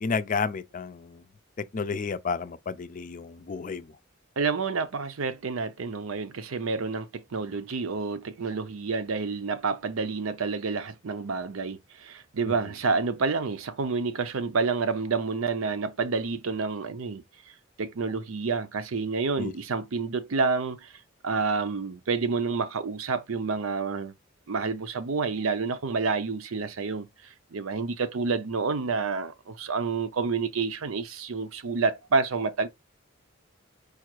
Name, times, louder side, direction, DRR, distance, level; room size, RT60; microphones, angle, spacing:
voice 1, 0.0-1.2 1.7-3.9 12.5-12.6 19.4-19.5, left 5 dB, 40° left, 0.4 m, -31 dB
voice 2, 4.4-17.2 17.8-20.9 21.2-24.1 24.5-27.1 27.5-32.7, right 4 dB, 85° right, 0.6 m, -29 dB
4.9 x 2.4 x 4.5 m
head